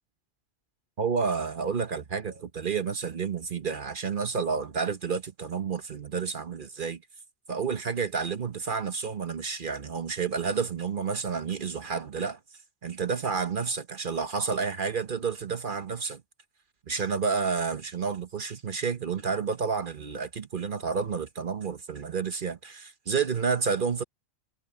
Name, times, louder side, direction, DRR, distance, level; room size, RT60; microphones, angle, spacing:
voice 1, 1.0-7.0 7.5-12.4 12.8-16.2 16.9-24.0, right 5 dB, 50° right, 1.1 m, -30 dB
omnidirectional pair, 1.2 m